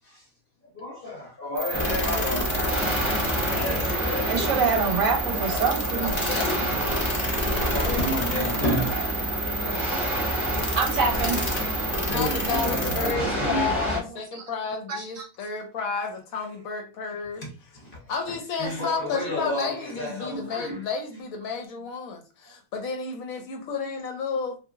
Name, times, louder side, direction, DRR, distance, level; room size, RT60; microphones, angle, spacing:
voice 1, 0.8-2.8 3.2-4.5 5.3-5.6 6.5-6.6 7.7-9.0 12.1-13.6 18.6-20.8, left 1 dB, 45° left, 0.8 m, -31 dB
sound 1, 1.6-13.1, right 1 dB, 90° left, 0.3 m, -30 dB
sound 2, 1.7-14.0, right 1 dB, ahead, 0.7 m, -29 dB
voice 2, 4.3-6.1 10.8-11.4 14.9-15.2, right 5 dB, 65° right, 1.1 m, -25 dB
voice 3, 6.0-6.8 11.9-17.8 18.1-24.6, left 5 dB, 70° left, 1.0 m, -32 dB
2.8 x 2.6 x 2.3 m
omnidirectional pair, 1.6 m